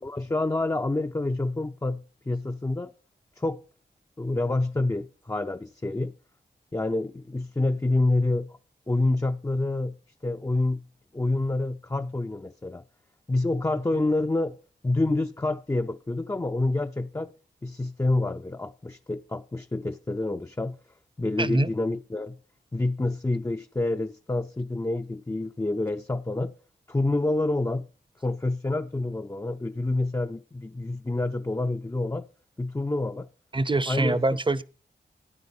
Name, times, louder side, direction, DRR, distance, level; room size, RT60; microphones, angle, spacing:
voice 1, 0.0-2.9 3.4-3.6 4.2-6.1 6.7-8.6 8.9-10.0 10.2-10.9 11.1-12.8 13.3-14.6 14.8-17.3 17.6-20.8 21.2-22.4 22.7-26.5 26.9-27.9 28.2-32.3 32.6-33.3 33.9-34.2, left 2 dB, 15° left, 0.6 m, -27 dB
voice 2, 21.4-21.7 33.5-34.6, right 2 dB, 25° right, 0.8 m, -24 dB
13.5 x 9.4 x 5.3 m
cardioid pair, 55°, 19 cm